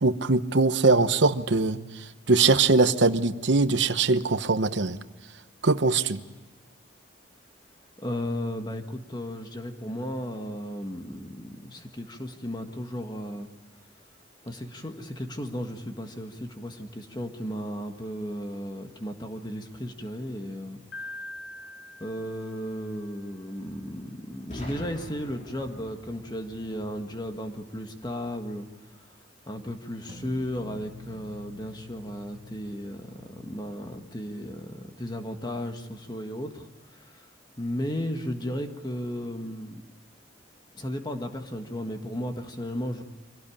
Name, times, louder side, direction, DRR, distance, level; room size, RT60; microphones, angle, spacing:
voice 1, 0.0-1.8 2.3-5.0 5.6-6.2, right 3 dB, 70° right, 11 dB, 0.9 m, -22 dB
voice 2, 8.0-13.5 14.4-20.8 22.0-28.7 29.5-37.2 37.6-39.8 40.7-43.0, equal, 20° left, 5 dB, 1.7 m, -35 dB
Piano, 20.9-23.0, left 1 dB, 85° left, 4.6 m, -42 dB
Boom, 24.5-28.3, left 1 dB, 40° left, 3.9 m, -44 dB
sound 1, 30.1-35.0, left 2 dB, 20° right, 2.6 m, -49 dB
25.0 x 17.5 x 8.7 m, 1.2 s
head